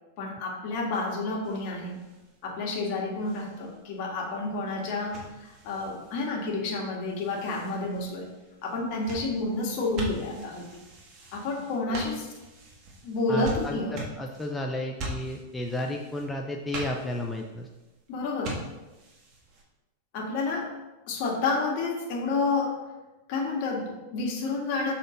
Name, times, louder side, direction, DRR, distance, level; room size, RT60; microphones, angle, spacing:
voice 1, 0.2-2.0 2.4-8.3 8.6-10.8 11.3-12.3 13.0-14.0 18.1-18.6 20.1-20.7 21.1-22.8 23.3-24.9, left 3 dB, 55° left, 0 dB, 1.7 m, -30 dB
sound 1, 1.4-19.6, right 1 dB, 40° right, 1.8 m, -43 dB
voice 2, 13.3-17.7, left 1 dB, 10° left, 1 dB, 0.5 m, -33 dB
6.6 x 4.3 x 3.9 m, 1.1 s
hypercardioid pair, 125°, 0 cm